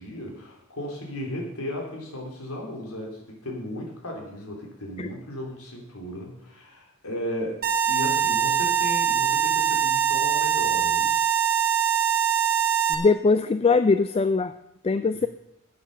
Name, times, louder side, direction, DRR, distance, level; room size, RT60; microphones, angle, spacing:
voice 1, 0.0-11.3 15.0-15.2, equal, 80° left, 0 dB, 3.2 m, -35 dB
sound 1, 7.6-12.9, right 8 dB, 45° right, 1.4 m, -23 dB
voice 2, 12.9-14.6 14.8-15.3, left 4 dB, 25° left, 11 dB, 0.3 m, -21 dB
9.9 x 8.7 x 6.6 m, 0.83 s
head